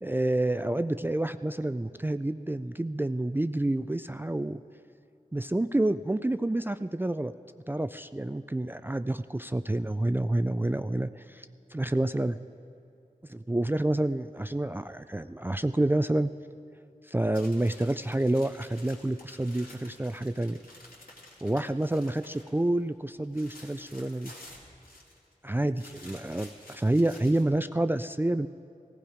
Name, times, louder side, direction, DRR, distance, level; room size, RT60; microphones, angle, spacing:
voice 1, 0.0-4.6 5.3-7.3 7.7-11.5 11.7-12.3 13.3-16.3 17.1-20.6 21.4-24.3 25.4-28.5, right 1 dB, 15° right, 11 dB, 0.3 m, -28 dB
sound 1, 17.3-22.6 22.9-25.3 25.7-27.4, left 1 dB, 85° left, 2.5 m, -51 dB
17.5 x 15.5 x 5.0 m, 2.7 s
wide cardioid pair, 65°, 15 cm